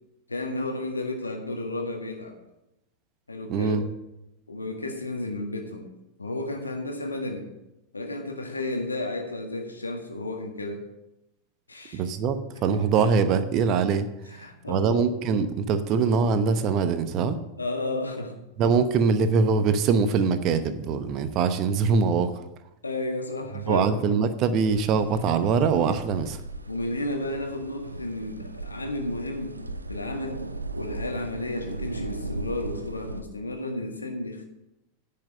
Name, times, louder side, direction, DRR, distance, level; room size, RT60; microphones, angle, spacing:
voice 1, 0.3-2.4 3.3-3.8 4.5-5.9 6.2-7.5 7.9-10.9 11.7-12.0 13.0-13.1 14.2-15.1 17.6-18.5 22.8-23.9 26.7-29.6 29.9-30.5 30.8-34.5, left 2 dB, 80° left, 3 dB, 1.7 m, -32 dB
voice 2, 3.5-3.8 11.9-14.4 14.7-17.4 18.6-22.4 23.7-26.4, right 5 dB, 35° right, 10 dB, 0.9 m, -23 dB
sound 1, 24.7-33.2, right 2 dB, 80° right, 0.6 m, -37 dB
10.5 x 5.7 x 7.7 m, 0.91 s
figure-of-eight pair, 90°, 0 cm